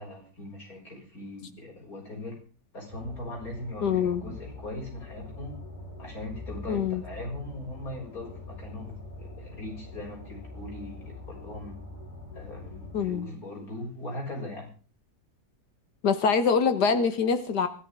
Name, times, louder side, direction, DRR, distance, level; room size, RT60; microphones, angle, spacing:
voice 1, 0.0-2.4 2.7-5.5 6.0-11.8 12.3-14.7, left 1 dB, 60° left, 0 dB, 7.3 m, -40 dB
sound 1, 2.9-13.1, left 2 dB, 25° left, 4.8 m, -44 dB
voice 2, 3.8-4.2 6.7-7.0 12.9-13.3 16.0-17.7, left 6 dB, 75° left, 10 dB, 1.9 m, -24 dB
24.5 x 14.5 x 3.8 m, 0.38 s
omnidirectional pair, 1.8 m